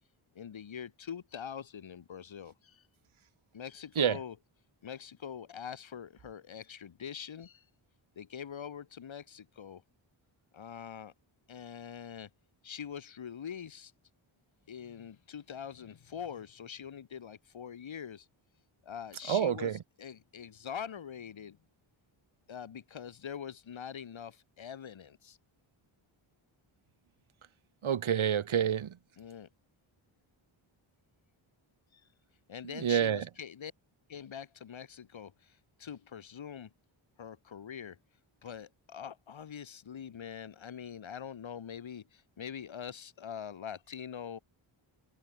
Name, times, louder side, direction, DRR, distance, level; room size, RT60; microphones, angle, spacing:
voice 1, 0.3-2.8 3.5-4.4 4.8-7.6 8.2-9.8 10.5-11.1 11.5-12.3 12.6-13.9 14.7-18.3 18.8-19.7 20.0-21.6 22.5-25.4 29.2-29.5 31.9-32.0 32.5-33.7 34.1-36.7 37.2-38.0 38.4-44.4, left 8 dB, 70° left, 2.6 m, -44 dB
voice 2, 19.3-19.8 27.8-28.9 32.7-33.2, right 9 dB, 75° right, 2.0 m, -28 dB
open air
wide cardioid pair, 140°, 48 cm